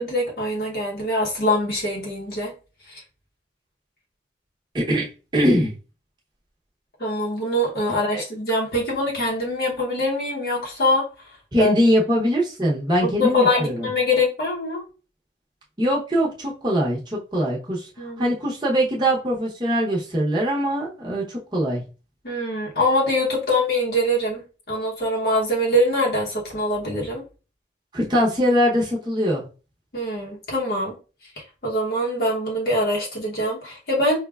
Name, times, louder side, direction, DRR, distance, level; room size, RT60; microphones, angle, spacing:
voice 1, 0.0-2.5 2.9-3.0 7.0-11.0 11.6-11.7 13.0-14.8 18.0-18.3 22.2-27.2 29.9-31.0 31.6-34.2, left 1 dB, 60° left, -3 dB, 0.9 m, -23 dB
voice 2, 4.7-5.1 5.3-5.7 8.1-8.2 11.5-13.9 15.8-17.9 18.2-21.8 27.9-29.4, equal, 25° right, -4 dB, 0.8 m, -22 dB
4.8 x 2.1 x 2.3 m, 0.34 s
head